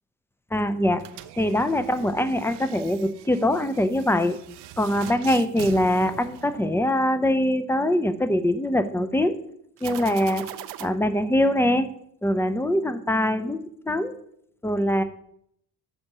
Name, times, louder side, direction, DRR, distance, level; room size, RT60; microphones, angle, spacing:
voice 1, 0.5-1.0 1.4-4.4 4.8-9.3 9.8-10.4 10.8-11.9 12.2-13.6 13.9-14.1 14.6-15.0, left 1 dB, 5° left, 10 dB, 0.6 m, -23 dB
sound 1, 1.0-7.1 9.8-10.9, right 13 dB, 60° right, 0.6 m, -41 dB
5.3 x 5.3 x 6.0 m, 0.70 s
hypercardioid pair, 50°, 46 cm